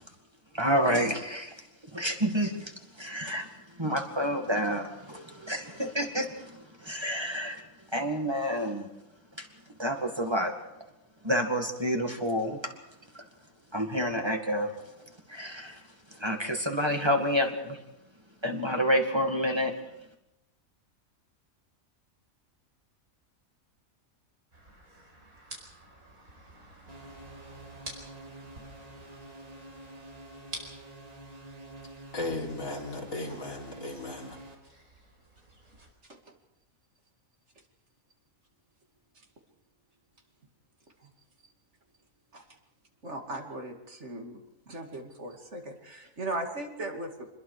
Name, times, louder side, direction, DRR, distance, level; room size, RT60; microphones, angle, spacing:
voice 1, 0.5-1.7 1.9-3.5 3.8-7.6 7.9-8.9 9.4-9.5 9.8-10.5 11.2-12.6 13.7-14.7 15.3-15.8 16.1-17.8 18.4-19.7, equal, 20° right, 2.1 m, -29 dB
sound 1, 24.5-35.9, right 1 dB, 85° right, 5.2 m, -50 dB
sound 2, 26.9-34.5, right 1 dB, 35° right, 4.1 m, -48 dB
voice 2, 32.1-34.4, left 2 dB, 75° left, 4.3 m, -36 dB
voice 3, 43.0-47.3, right 2 dB, 55° right, 2.8 m, -38 dB
26.0 x 21.5 x 4.9 m
omnidirectional pair, 1.4 m